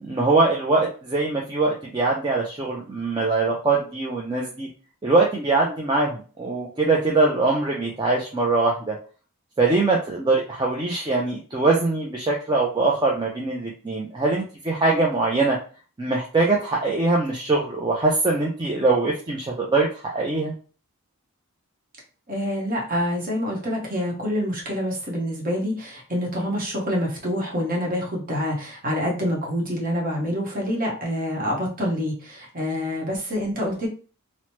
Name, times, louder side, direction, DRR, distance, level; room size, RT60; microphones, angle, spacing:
voice 1, 0.0-4.7 5.0-9.0 9.6-15.6 16.0-20.5, right 3 dB, 20° right, -3 dB, 0.4 m, -22 dB
voice 2, 22.3-33.9, equal, 40° right, -2 dB, 0.9 m, -26 dB
3.0 x 2.0 x 3.0 m, 0.38 s
head